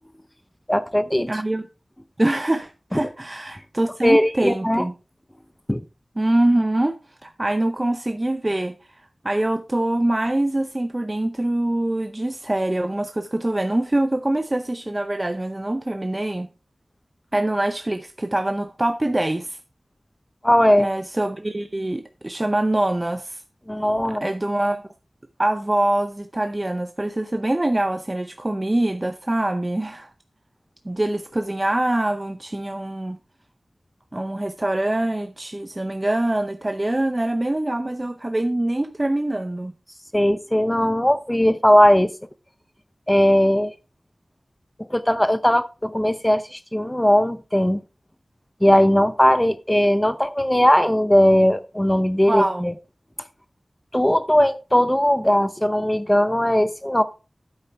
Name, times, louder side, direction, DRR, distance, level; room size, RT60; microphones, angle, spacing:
voice 1, 0.7-1.3 2.9-3.0 4.0-4.8 5.7-5.8 20.4-20.9 23.7-24.3 40.1-42.1 43.1-43.7 44.8-47.8 48.6-52.7 53.9-57.0, equal, 10° left, 0.6 m, -18 dB
voice 2, 1.3-1.6 2.2-4.9 6.2-6.9 7.2-16.5 17.3-19.6 20.8-23.4 24.1-24.8 25.4-30.1 30.8-33.2 34.1-39.7 52.3-52.7, right 1 dB, 30° right, 0.6 m, -24 dB
10.5 x 8.8 x 3.4 m
wide cardioid pair, 65°, 0 cm